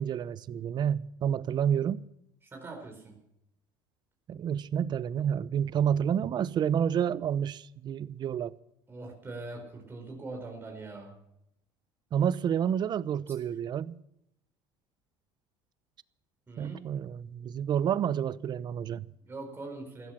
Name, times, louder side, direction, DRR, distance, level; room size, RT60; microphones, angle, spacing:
voice 1, 0.0-2.0 4.3-8.5 12.1-14.0 16.6-19.0, right 8 dB, 45° right, 0.8 m, -29 dB
voice 2, 2.4-3.2 8.9-11.1 13.3-13.4 16.5-16.9 19.2-20.1, right 3 dB, 20° right, 4.5 m, -42 dB
15.5 x 13.5 x 5.8 m
supercardioid pair, 90°, 10 cm